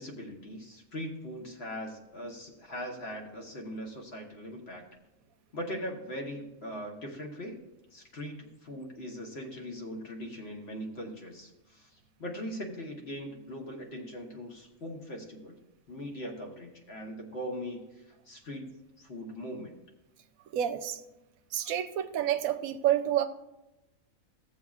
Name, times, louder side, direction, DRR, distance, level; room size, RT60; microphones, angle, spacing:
voice 1, 0.0-4.8 5.5-7.6 7.9-15.6 15.9-19.7, equal, 50° left, 1 dB, 1.4 m, -40 dB
voice 2, 20.5-21.0 21.5-23.3, right 11 dB, 80° right, 10 dB, 1.0 m, -28 dB
15.5 x 7.2 x 2.4 m, 0.96 s
omnidirectional pair, 1.4 m